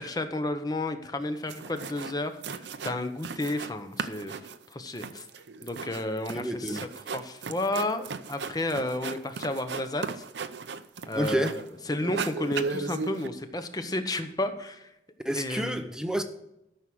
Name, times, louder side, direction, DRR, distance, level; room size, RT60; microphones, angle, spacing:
voice 1, 0.0-4.4 4.7-5.3 5.6-6.8 7.1-10.2 11.1-11.6 11.9-14.9 15.3-15.9, left 1 dB, 20° left, 0.9 m, -32 dB
sound 1, 1.2-1.3 1.5-2.2 2.4-3.7 4.0-11.7 12.0-13.3, right 4 dB, 75° right, 0.6 m, -36 dB
voice 2, 6.3-6.9 11.1-11.6 15.2-16.2, equal, 5° right, 0.6 m, -29 dB
13.0 x 6.3 x 6.1 m
head